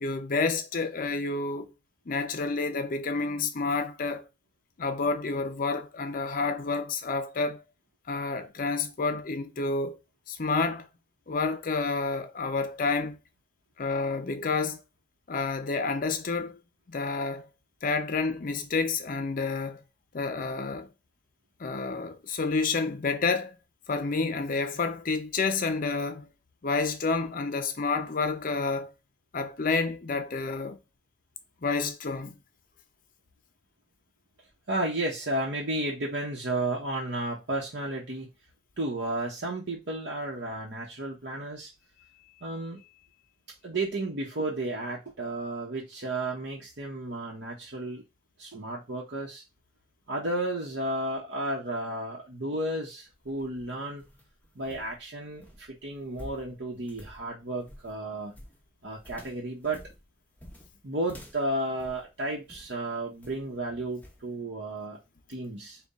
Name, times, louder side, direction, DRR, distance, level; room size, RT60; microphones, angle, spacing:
voice 1, 0.0-1.7 2.1-4.2 4.8-7.6 8.1-10.0 10.3-10.9 11.3-13.2 13.8-14.8 15.3-16.6 16.9-17.5 17.8-19.8 20.1-20.9 21.6-23.5 23.9-26.3 26.6-28.9 29.3-30.8 31.6-32.3, left 4 dB, 50° left, 0.6 m, -29 dB
voice 2, 34.7-38.3 38.8-41.7 42.4-42.8 43.6-48.0 48.4-49.4 50.1-54.0 54.5-58.4 58.8-59.8 60.8-65.0 65.3-65.8, right 1 dB, 70° right, 0.9 m, -33 dB
sound 1, 53.1-62.8 63.2-63.6 64.0-64.3, equal, 10° left, 0.8 m, -50 dB
3.7 x 2.3 x 4.0 m
head